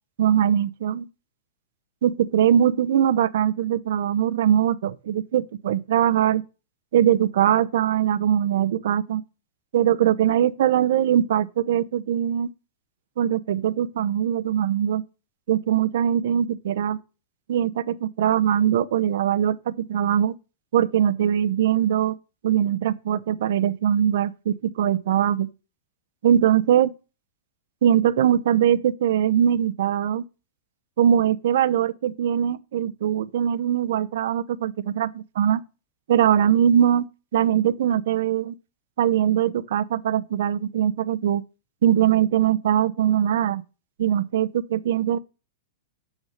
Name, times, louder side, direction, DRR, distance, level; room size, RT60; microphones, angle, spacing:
voice 1, 0.2-1.1 2.0-6.4 6.9-9.2 9.7-12.5 13.2-15.0 15.5-17.0 17.5-20.3 20.7-22.1 22.4-25.5 26.2-26.9 27.8-30.2 31.0-35.6 36.1-37.1 37.3-38.6 39.0-41.4 41.8-43.6 44.0-45.2, right 10 dB, 70° right, 0.7 m, -21 dB
6.5 x 6.3 x 6.4 m
hypercardioid pair, 115°, 0 cm